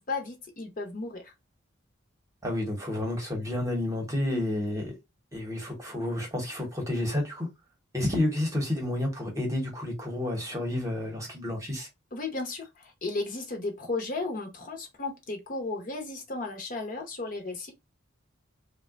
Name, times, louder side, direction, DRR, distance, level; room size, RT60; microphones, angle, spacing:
voice 1, 0.1-1.3 12.1-17.7, left 3 dB, 40° left, 0.7 m, -34 dB
voice 2, 2.4-4.9 5.3-7.5 7.9-11.9, left 1 dB, 15° right, 0.9 m, -30 dB
3.6 x 2.2 x 2.3 m
head